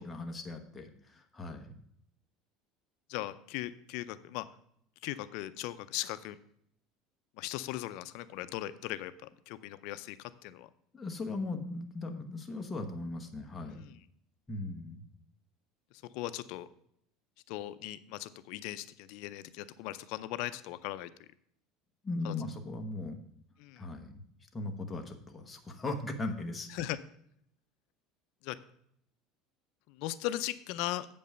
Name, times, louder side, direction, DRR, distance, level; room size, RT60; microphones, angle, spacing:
voice 1, 0.0-1.6 10.9-13.8 14.5-15.0 22.0-23.2 23.8-24.2 24.5-26.7, left 2 dB, 10° left, 3 dB, 1.0 m, -38 dB
voice 2, 3.1-4.5 5.0-6.4 7.4-10.7 13.7-14.0 16.1-16.7 17.5-21.1 22.2-22.3 23.6-23.9 26.7-27.0 28.4-28.6 29.9-31.1, left 15 dB, 60° left, 14 dB, 0.5 m, -38 dB
7.8 x 5.3 x 6.7 m, 0.69 s
cardioid pair, 160°, 0 cm